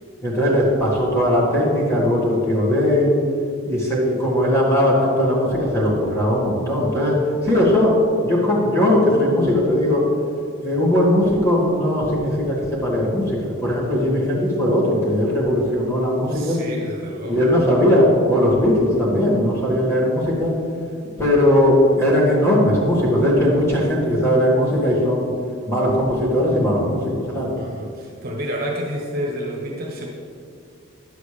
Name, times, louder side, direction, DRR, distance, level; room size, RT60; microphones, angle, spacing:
voice 1, 0.2-3.1 3.7-7.2 7.4-8.0 8.2-10.0 10.6-16.6 17.3-20.5 21.2-25.3 25.6-27.5, left 1 dB, 15° left, -6 dB, 2.0 m, -19 dB
voice 2, 15.9-17.4 27.6-30.1, equal, 45° right, -2 dB, 1.3 m, -30 dB
10.5 x 7.9 x 3.3 m, 2.3 s
head